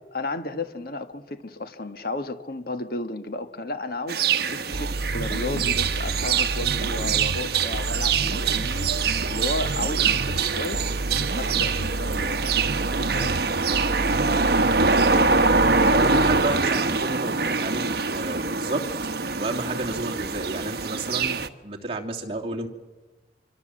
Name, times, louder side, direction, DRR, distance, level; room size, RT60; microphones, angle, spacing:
voice 1, 0.1-12.5 13.0-13.4, left 2 dB, 55° left, 9 dB, 1.6 m, -33 dB
sound 1, 4.1-21.5, right 4 dB, 60° right, 1.1 m, -24 dB
sound 2, 4.7-17.0, right 2 dB, 80° right, 1.0 m, -30 dB
voice 2, 15.8-18.8 19.4-22.7, right 2 dB, 35° right, 0 dB, 2.9 m, -31 dB
26.0 x 25.0 x 7.7 m, 1.2 s
head